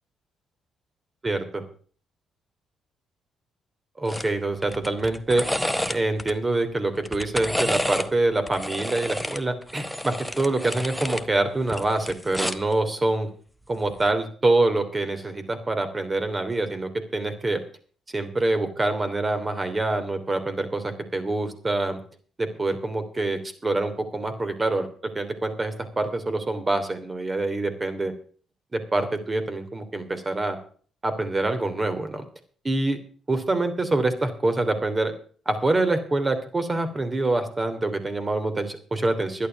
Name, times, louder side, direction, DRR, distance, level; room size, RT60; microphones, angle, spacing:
voice 1, 1.2-1.6 4.0-5.4 5.9-13.3 13.7-17.6 18.1-22.0 22.4-28.1 28.7-30.6 31.0-32.2 32.6-33.0 33.3-35.1 35.4-39.5, right 2 dB, 25° right, 8 dB, 3.0 m, -25 dB
sound 1, 4.1-4.3 4.6-6.3 7.0-8.1 8.5-11.3 11.6-12.7 13.9-14.1, left 1 dB, 5° left, 1.0 m, -30 dB
12.0 x 11.0 x 5.8 m, 0.43 s
cardioid pair, 90°, 0 cm